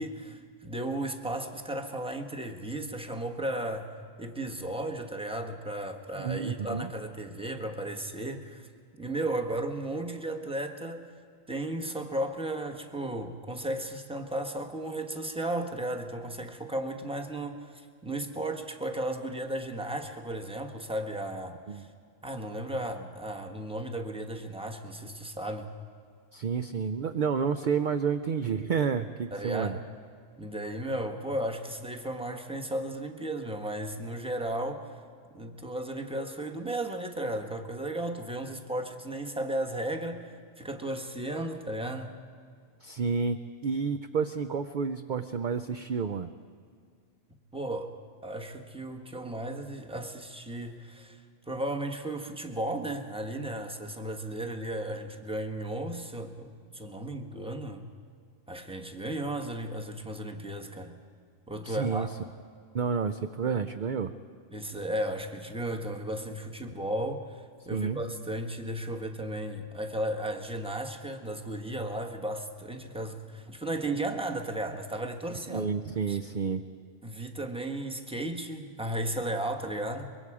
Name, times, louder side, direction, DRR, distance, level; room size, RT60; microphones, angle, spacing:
voice 1, 0.0-3.9 4.2-8.7 9.0-11.1 11.5-21.9 22.2-25.7 29.3-29.8 30.4-35.0 35.3-42.2 47.5-47.9 48.2-57.9 58.5-61.0 61.5-62.3 64.5-75.7 76.1-76.2 77.0-80.1, right 1 dB, 5° right, 4 dB, 1.1 m, -35 dB
voice 2, 6.2-6.9 21.7-21.8 26.3-29.8 42.8-46.4 61.6-62.1 62.7-64.1 67.7-68.0 75.5-76.6, right 6 dB, 50° right, 8 dB, 0.6 m, -30 dB
24.0 x 22.5 x 4.9 m, 2.2 s
omnidirectional pair, 1.3 m